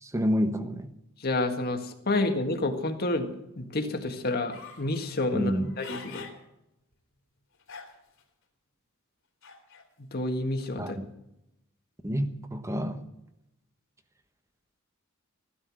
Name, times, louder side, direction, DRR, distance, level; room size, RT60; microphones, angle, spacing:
voice 1, 0.0-0.9 5.3-5.7 10.8-11.1 12.0-13.0, equal, 15° right, 1.2 m, -28 dB
voice 2, 1.2-6.3 10.1-11.0, left 2 dB, 45° left, 1.8 m, -29 dB
sound 1, 4.5-4.9 5.5-6.4 6.9-7.0 7.6-8.2 9.4-9.9, left 5 dB, 65° left, 3.3 m, -44 dB
15.5 x 11.5 x 6.4 m
head